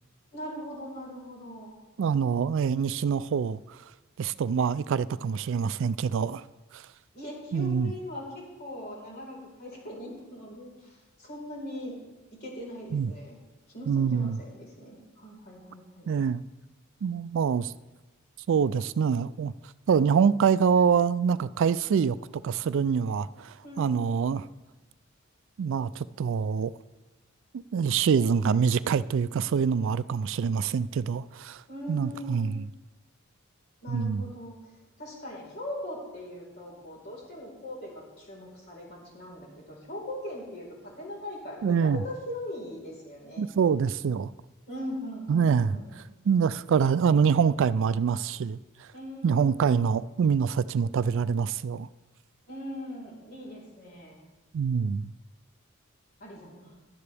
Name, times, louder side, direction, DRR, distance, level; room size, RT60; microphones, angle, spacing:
voice 1, 0.3-1.7 7.1-12.0 12.4-13.4 13.7-16.1 23.6-24.4 31.7-32.5 33.8-34.6 35.0-43.5 44.7-45.9 48.9-49.7 52.5-54.2 56.2-56.7, left 1 dB, 50° left, 4.3 m, -40 dB
voice 2, 2.0-3.6 4.2-6.4 6.7-6.8 7.5-7.9 12.9-13.1 13.9-14.4 16.1-16.4 17.0-17.7 18.5-19.5 19.9-22.2 22.4-24.5 25.6-26.7 27.7-31.6 31.9-32.7 33.9-34.3 41.6-42.0 43.4-44.3 45.3-45.7 46.3-48.6 49.2-51.9 54.5-55.1, right 6 dB, 65° right, 0.3 m, -25 dB
16.5 x 11.5 x 3.4 m
head